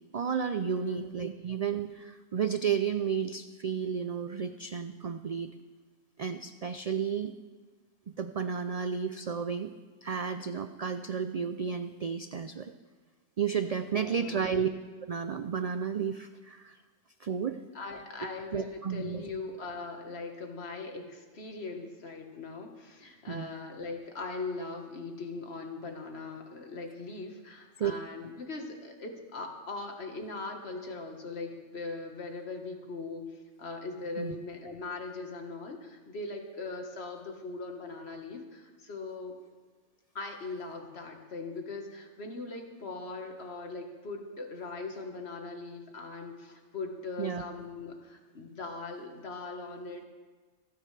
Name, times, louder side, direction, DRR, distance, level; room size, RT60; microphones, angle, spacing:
voice 1, 0.0-5.5 6.2-7.3 8.1-9.7 10.0-12.7 13.4-14.7 15.1-16.8 17.2-17.6 18.5-19.2 23.3-23.5 27.8-27.9 34.2-34.3 47.2-47.4, right 7 dB, 65° right, 9 dB, 0.3 m, -32 dB
voice 2, 0.8-1.1 13.9-14.5 17.7-39.3 40.1-50.1, left 3 dB, 60° left, 3 dB, 1.7 m, -40 dB
26.5 x 9.9 x 3.3 m, 1.4 s
omnidirectional pair, 1.2 m